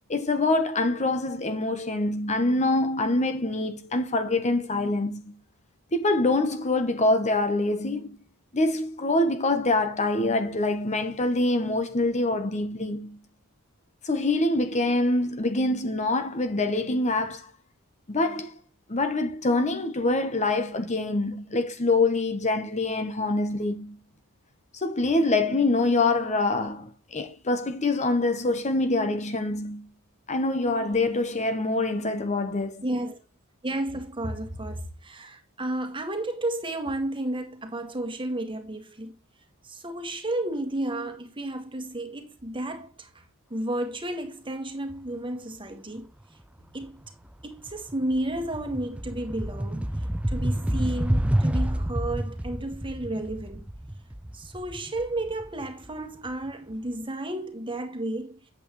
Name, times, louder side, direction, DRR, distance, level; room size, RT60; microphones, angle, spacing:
voice 1, 0.1-5.3 5.9-8.2 8.5-13.2 14.0-17.5 18.1-18.5 18.9-24.0 24.7-29.9 30.3-32.8, left 2 dB, 30° left, 1.0 m, -25 dB
voice 2, 32.8-33.2 33.6-39.1 39.6-43.2 43.5-46.1 46.7-47.0 47.4-49.9 50.3-53.7 54.3-58.4, right 1 dB, 25° right, 1.8 m, -32 dB
sound 1, 46.8-47.1 47.4-56.3, right 1 dB, 5° right, 0.4 m, -29 dB
8.6 x 8.4 x 3.1 m
head